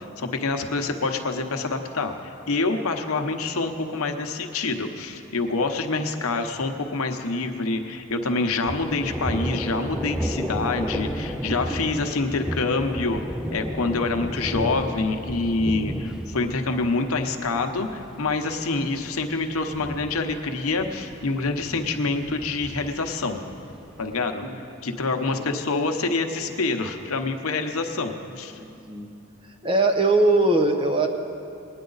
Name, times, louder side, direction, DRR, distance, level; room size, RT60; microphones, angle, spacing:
voice 1, 0.0-13.2 13.5-23.4 24.0-24.4 24.8-28.6, left 3 dB, 85° left, 5 dB, 0.9 m, -26 dB
Thunder, 8.7-24.2, equal, 5° right, 0.4 m, -33 dB
voice 2, 28.6-29.1 29.6-31.1, right 2 dB, 25° right, 4 dB, 0.8 m, -21 dB
20.0 x 9.8 x 4.0 m, 2.7 s
head